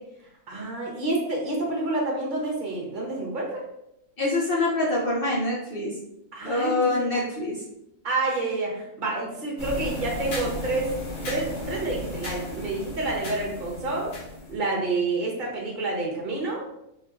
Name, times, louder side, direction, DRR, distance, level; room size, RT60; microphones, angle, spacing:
voice 1, 0.5-3.6 6.3-7.1 8.0-10.9 11.3-14.1 14.5-16.6, right 2 dB, 35° right, -3 dB, 1.0 m, -28 dB
voice 2, 4.2-5.9 6.4-7.6, left 2 dB, 50° left, -4 dB, 0.7 m, -25 dB
sound 1, 9.6-14.5, left 2 dB, 85° left, 1.9 m, -35 dB
4.5 x 3.0 x 2.5 m, 0.82 s
omnidirectional pair, 1.6 m